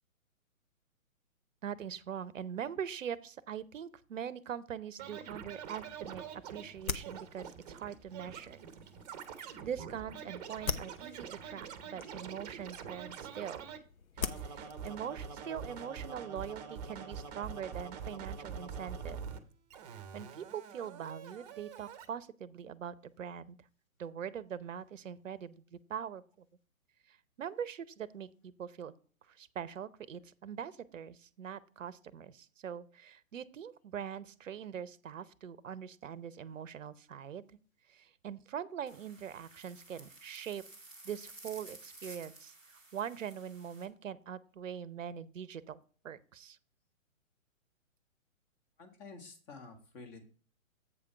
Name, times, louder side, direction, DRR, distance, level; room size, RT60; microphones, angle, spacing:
voice 1, 1.6-6.2 6.5-8.6 9.6-13.6 14.2-19.2 19.9-23.6 24.0-26.5 27.1-28.9 29.3-37.6 37.9-40.6 41.0-42.5 42.9-46.6, right 8 dB, 65° right, 18 dB, 0.8 m, -42 dB
Scratching (performance technique), 5.0-13.8 14.2-19.4 19.7-22.1, right 6 dB, 30° right, 0.9 m, -45 dB
sound 1, 5.7-16.0, left 6 dB, 85° left, 0.9 m, -45 dB
sound 2, 38.9-43.9, right 2 dB, 5° left, 0.4 m, -53 dB
voice 2, 48.8-50.3, left 3 dB, 25° left, 5 dB, 1.6 m, -50 dB
8.3 x 5.1 x 4.5 m, 0.40 s
figure-of-eight pair, 130°, 41 cm